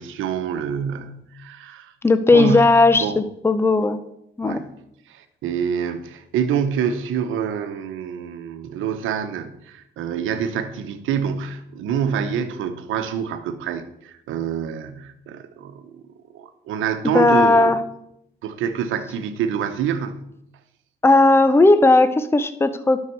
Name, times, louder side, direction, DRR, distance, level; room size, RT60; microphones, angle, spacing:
voice 1, 0.0-1.9 2.3-3.2 4.4-4.7 5.1-16.0 16.3-17.7 18.4-20.2, right 7 dB, 85° right, 1.0 m, -27 dB
voice 2, 2.0-4.0 4.4-4.6 17.1-17.8 21.0-23.0, left 2 dB, 10° left, 0.7 m, -16 dB
11.5 x 6.6 x 4.6 m
cardioid pair, 90°, 20 cm